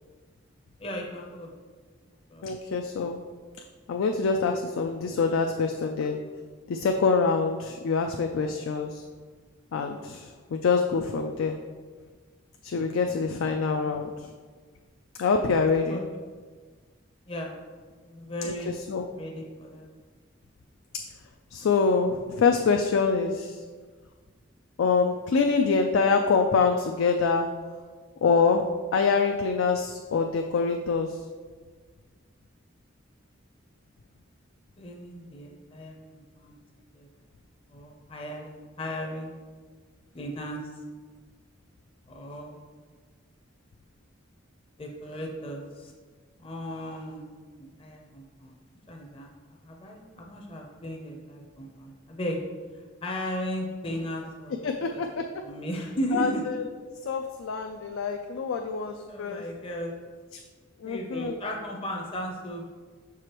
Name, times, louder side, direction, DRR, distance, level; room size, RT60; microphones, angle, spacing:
voice 1, 0.8-1.5 2.3-2.7 13.7-13.9 15.9-16.0 17.3-17.5 18.0-18.7 19.2-19.9 34.8-36.6 36.9-37.1 37.7-39.3 40.1-40.6 42.1-42.6 44.8-45.9 46.4-47.3 47.6-48.5 48.9-49.3 49.6-52.4 53.0-56.4 59.1-59.9 60.8-62.7, equal, 25° left, 0 dB, 0.6 m, -36 dB
voice 2, 2.4-3.2 3.9-6.2 6.7-9.0 9.7-11.6 12.6-14.1 15.2-16.0 18.5-18.6 18.9-19.1 21.5-23.6 24.8-27.5 28.2-28.6 28.9-31.1 54.6-55.2 56.1-56.6 57.1-59.4 60.8-61.4, left 5 dB, 85° left, 4 dB, 0.4 m, -25 dB
6.7 x 4.8 x 3.0 m, 1.5 s
head